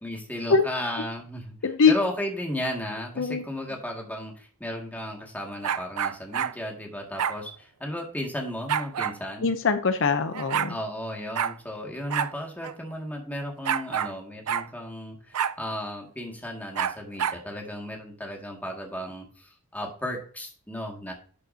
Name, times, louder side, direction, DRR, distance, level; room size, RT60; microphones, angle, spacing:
voice 1, 0.0-1.6 1.9-9.5 10.7-21.1, left 1 dB, 5° left, 0 dB, 2.1 m, -34 dB
voice 2, 1.6-1.9 3.2-3.4 9.4-10.8, left 5 dB, 60° left, 9 dB, 0.7 m, -22 dB
sound 1, 5.6-6.5 7.2-7.4 8.7-9.2 10.0-10.1 10.3-10.7 11.3-11.5 12.1-12.3 12.6-12.7 13.6-14.1 14.5-14.7 15.3-15.6 16.7-17.4, right 8 dB, 80° right, 0.5 m, -27 dB
12.0 x 6.4 x 2.8 m, 0.43 s
head